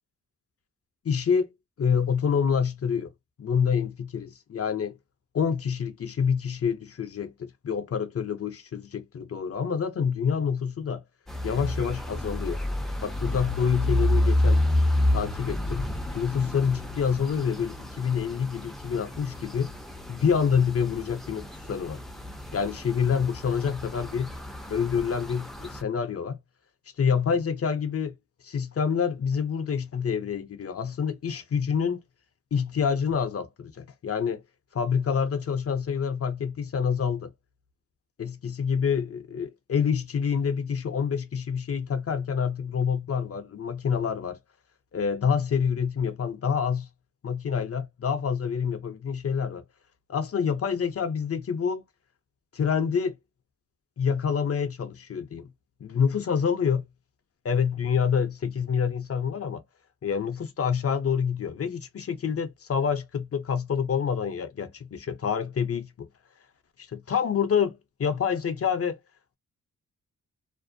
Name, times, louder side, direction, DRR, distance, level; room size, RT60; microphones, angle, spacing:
voice 1, 1.0-1.5 1.8-3.1 3.4-5.0 5.3-11.0 11.4-12.6 13.0-14.6 15.1-19.7 20.1-22.0 22.5-24.3 24.7-26.4 27.0-28.1 28.4-32.0 32.5-34.4 34.7-37.3 38.2-44.4 44.9-46.9 47.2-49.6 50.1-51.8 52.5-53.1 54.0-55.5 55.8-56.8 57.4-59.6 60.0-66.1 66.9-69.0, left 6 dB, 45° left, 0.6 m, -27 dB
sound 1, 11.3-25.8, left 1 dB, ahead, 0.5 m, -29 dB
2.5 x 2.1 x 2.5 m
cardioid pair, 65°, 32 cm